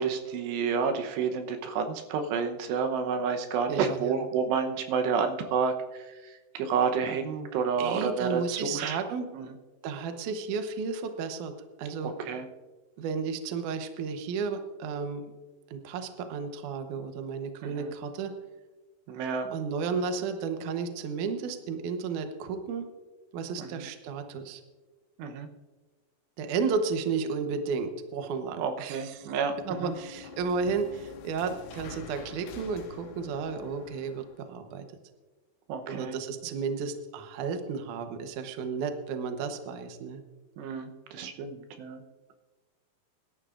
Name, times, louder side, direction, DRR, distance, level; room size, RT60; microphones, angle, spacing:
voice 1, 0.0-9.0 9.3-9.5 12.0-12.5 17.6-17.9 19.1-19.5 23.6-23.9 25.2-25.5 28.6-29.9 35.7-36.2 40.6-42.0, right 6 dB, 85° right, 6 dB, 3.1 m, -30 dB
voice 2, 3.7-4.2 7.8-9.3 9.8-11.5 11.8-12.1 13.0-15.3 15.7-18.3 19.5-22.9 23.3-24.6 26.4-29.3 29.7-34.9 35.9-40.2, right 5 dB, 70° right, 7 dB, 2.0 m, -33 dB
sound 1, 28.9-34.5, left 7 dB, 90° left, 3.3 m, -47 dB
23.5 x 12.0 x 2.5 m, 1.3 s
omnidirectional pair, 4.8 m